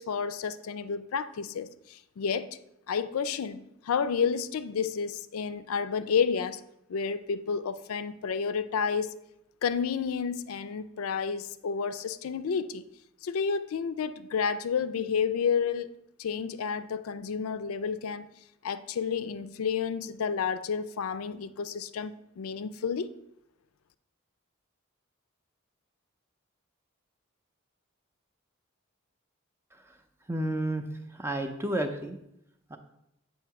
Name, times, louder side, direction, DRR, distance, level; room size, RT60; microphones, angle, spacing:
voice 1, 0.0-2.6 2.9-6.6 6.9-9.1 9.6-12.8 13.2-15.9 16.2-18.3 18.6-23.1, left 6 dB, 80° left, 0.4 m, -30 dB
voice 2, 30.3-30.9 31.1-32.2 32.7-32.8, right 1 dB, 10° right, 0.5 m, -31 dB
7.7 x 2.8 x 5.8 m
head